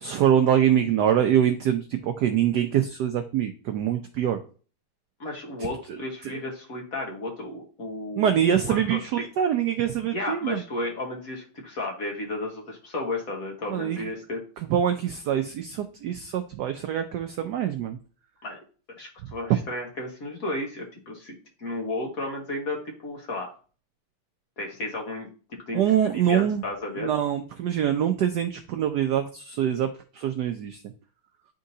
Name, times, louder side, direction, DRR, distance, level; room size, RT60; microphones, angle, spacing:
voice 1, 0.0-4.4 5.9-6.4 8.2-10.6 13.7-14.1 14.6-18.0 19.5-19.6 25.7-26.6 27.0-29.9 30.1-30.8, right 9 dB, 80° right, 7 dB, 0.9 m, -24 dB
voice 2, 5.2-8.3 8.6-9.2 10.1-14.4 18.4-18.6 19.0-23.5 24.6-25.8 26.1-27.1, left 2 dB, 45° left, 0 dB, 1.5 m, -33 dB
10.5 x 3.7 x 2.7 m, 0.39 s
omnidirectional pair, 2.4 m